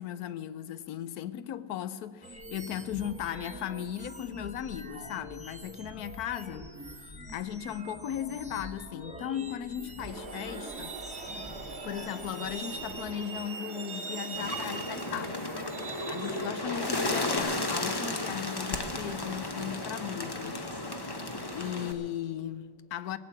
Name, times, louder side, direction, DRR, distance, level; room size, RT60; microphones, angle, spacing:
voice 1, 0.0-11.0 11.8-23.2, left 10 dB, 70° left, 1.0 m, -37 dB
sound 1, 2.2-13.1, equal, 5° right, 0.9 m, -45 dB
Truck, 10.0-17.4, right 4 dB, 40° right, 1.4 m, -41 dB
Bird, 14.3-21.9, left 2 dB, 25° left, 0.6 m, -34 dB
18.0 x 8.1 x 8.6 m
omnidirectional pair, 1.9 m